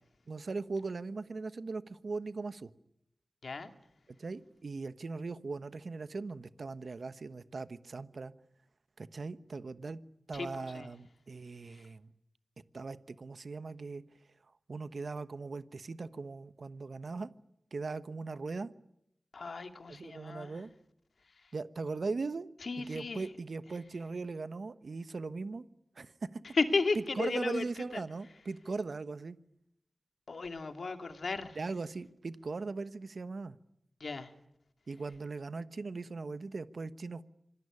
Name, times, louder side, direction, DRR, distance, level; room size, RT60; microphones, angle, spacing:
voice 1, 0.3-2.7 4.2-8.3 9.0-10.0 10.3-12.1 12.7-14.0 14.7-17.3 17.7-18.7 19.9-20.7 21.5-22.5 22.8-25.7 25.9-26.4 27.1-29.4 31.5-33.6 34.9-37.2, right 3 dB, 70° right, 13 dB, 1.2 m, -39 dB
voice 2, 10.3-10.9 11.7-11.8 19.3-20.5 22.6-23.2 26.5-27.6 27.9-28.0 30.3-31.6 34.0-34.3, left 4 dB, 75° left, 7 dB, 2.4 m, -34 dB
26.5 x 20.0 x 9.8 m, 0.80 s
cardioid pair, 50°, 0 cm